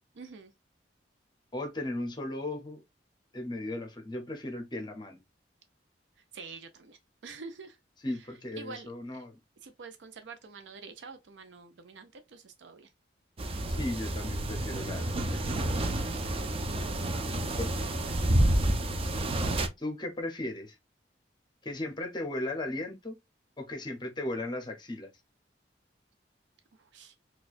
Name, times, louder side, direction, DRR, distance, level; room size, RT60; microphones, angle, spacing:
voice 1, 0.2-0.5 6.3-7.8 8.1-8.2 8.5-8.9 9.6-12.9 17.1-18.2 26.7-27.1, right 4 dB, 90° right, 0.5 m, -47 dB
voice 2, 1.5-2.8 3.3-5.2 8.0-9.4 13.7-15.9 16.8-16.9 17.6-17.8 19.1-19.3 19.8-20.8 21.6-23.2 23.6-25.1, left 1 dB, 25° left, 0.7 m, -36 dB
sound 1, 13.4-19.7, right 1 dB, 30° right, 0.4 m, -29 dB
4.2 x 2.3 x 2.4 m
head